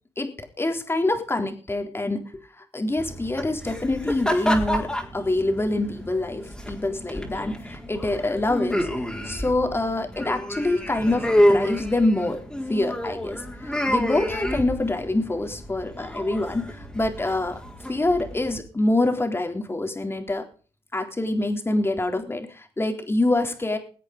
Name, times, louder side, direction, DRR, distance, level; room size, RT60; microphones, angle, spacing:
voice 1, 0.6-8.9 9.2-12.4 12.7-17.6 17.9-20.4 20.9-23.8, left 2 dB, 20° left, 5 dB, 3.7 m, -25 dB
sound 1, 3.0-18.6, equal, 5° left, 4.5 m, -28 dB
21.5 x 8.2 x 5.2 m, 0.39 s
supercardioid pair, 65°, 11 cm